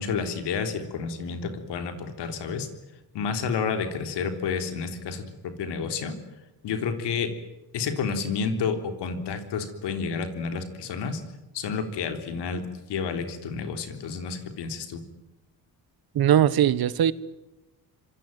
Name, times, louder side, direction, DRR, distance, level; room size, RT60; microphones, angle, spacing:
voice 1, 0.0-2.7 3.1-6.2 6.6-7.3 7.7-11.2 11.5-15.0, left 5 dB, 85° left, 7 dB, 3.7 m, -30 dB
voice 2, 16.1-17.1, right 10 dB, 65° right, 17 dB, 1.3 m, -20 dB
26.0 x 24.5 x 9.2 m, 1.0 s
cardioid pair, 105°, 40 cm